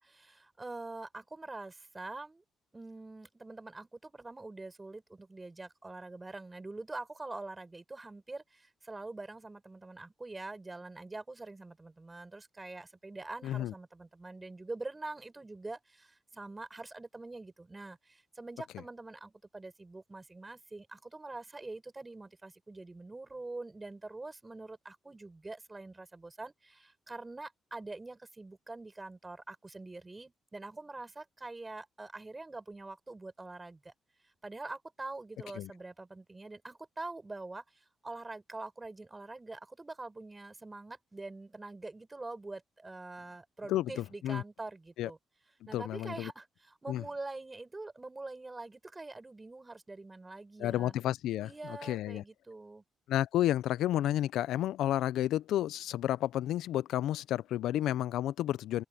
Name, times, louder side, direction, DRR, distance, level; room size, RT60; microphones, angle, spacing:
voice 1, 0.0-2.4 2.7-33.9 34.4-45.2 45.7-50.9 51.4-52.8, right 2 dB, 20° right, 6.7 m, -45 dB
voice 2, 13.4-13.7 35.6-35.7 43.7-44.4 45.0-45.1 45.7-46.3 46.9-47.0 50.6-52.2 53.1-58.8, left 13 dB, 80° left, 0.4 m, -31 dB
open air
cardioid pair, 90°, 0 cm